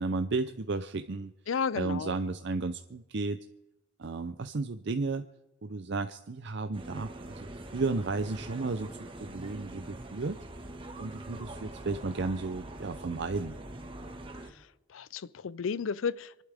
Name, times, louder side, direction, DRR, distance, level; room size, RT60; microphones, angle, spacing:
voice 1, 0.0-1.3 1.7-3.5 4.0-5.2 5.6-8.9 9.2-10.4 11.0-13.6, right 3 dB, 60° right, 0.6 m, -33 dB
voice 2, 1.5-2.1 14.9-16.4, left 6 dB, 80° left, 0.5 m, -32 dB
sound 1, 6.7-14.5, right 1 dB, 25° right, 1.6 m, -43 dB
27.5 x 11.5 x 3.5 m
head